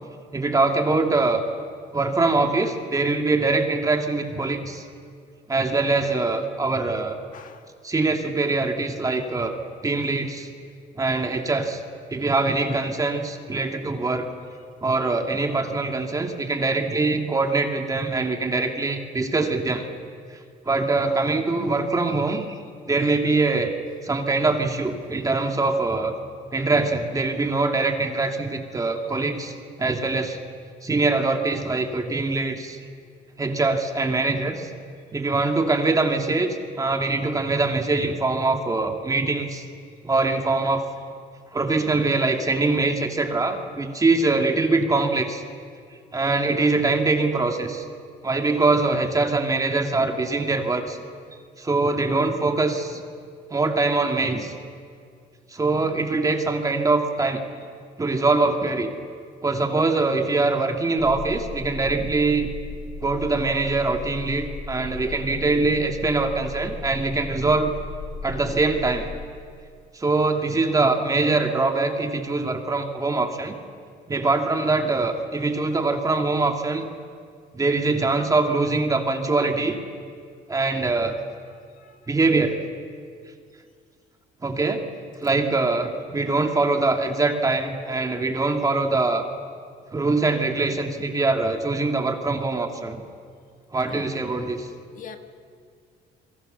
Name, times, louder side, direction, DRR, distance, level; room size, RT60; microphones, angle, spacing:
voice 1, 0.3-1.4 1.9-4.8 5.5-7.2 7.8-9.6 9.8-10.5 11.0-11.8 12.1-14.3 14.8-19.9 20.3-20.4 20.7-22.6 22.9-23.7 24.0-26.1 26.5-29.5 29.8-30.4 30.8-32.8 33.4-34.7 35.1-39.6 40.0-40.8 41.5-45.4 46.1-47.8 48.2-51.0 51.6-53.0 53.5-54.5 55.5-57.4 58.0-58.9 59.4-62.5 63.0-67.7 68.2-69.1 69.9-73.6 74.1-76.9 77.5-79.8 80.5-81.1 82.1-82.6 84.4-84.8 85.2-89.2 89.9-93.0 93.7-94.7, right 3 dB, 20° right, 3 dB, 2.6 m, -23 dB
voice 2, 7.3-7.7 28.8-28.9 81.5-82.0 85.2-85.3 93.9-94.1 94.9-95.2, left 7 dB, 50° left, 6 dB, 1.6 m, -43 dB
sound 1, 61.0-69.3, left 3 dB, 70° left, 2.7 m, -36 dB
27.5 x 22.0 x 6.9 m, 2.2 s
cardioid pair, 110°, 17 cm